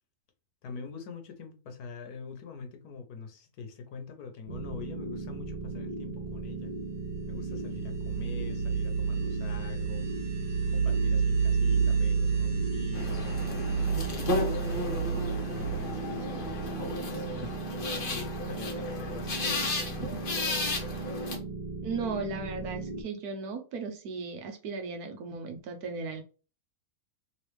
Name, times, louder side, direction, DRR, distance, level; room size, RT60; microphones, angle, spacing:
voice 1, 0.6-6.7 7.3-10.1 10.7-13.4 14.1-17.3 17.7-19.7, left 5 dB, 85° left, 1.4 m, -44 dB
sound 1, 4.5-23.0, right 3 dB, 30° right, 1.0 m, -37 dB
sound 2, 6.8-17.3, right 5 dB, 50° right, 1.9 m, -30 dB
sound 3, 12.9-21.4, left 2 dB, 40° left, 1.0 m, -34 dB
voice 2, 21.8-26.2, right 4 dB, 85° right, 1.3 m, -36 dB
3.5 x 3.2 x 3.2 m
omnidirectional pair, 1.6 m